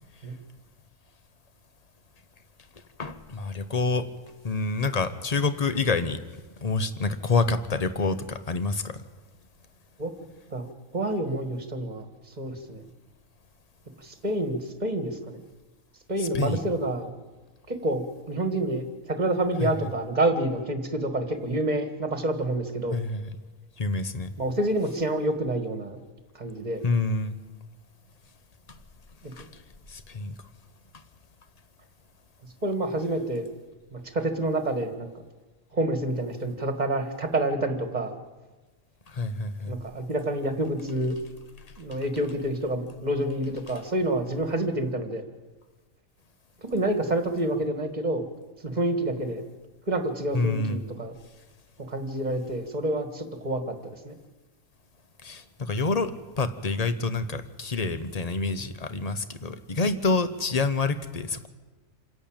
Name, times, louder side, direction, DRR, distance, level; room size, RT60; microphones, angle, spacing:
voice 1, 3.0-4.1 4.4-6.2 6.6-9.0 16.2-16.6 19.6-19.7 22.9-23.3 23.8-24.3 26.8-27.4 29.4-29.5 29.9-30.3 39.1-39.8 50.3-50.8 55.2-61.5, left 3 dB, 30° left, 11 dB, 1.0 m, -27 dB
voice 2, 10.5-12.1 12.4-12.9 14.0-15.4 16.1-17.1 17.7-23.0 24.4-26.0 26.4-26.8 29.2-29.3 32.6-33.4 33.9-35.1 35.7-38.1 39.7-41.2 41.8-45.2 46.6-48.2 48.6-49.4 49.9-51.1 51.8-54.2, right 1 dB, 35° right, 7 dB, 1.8 m, -28 dB
27.0 x 11.0 x 8.9 m, 1.3 s
omnidirectional pair, 1.4 m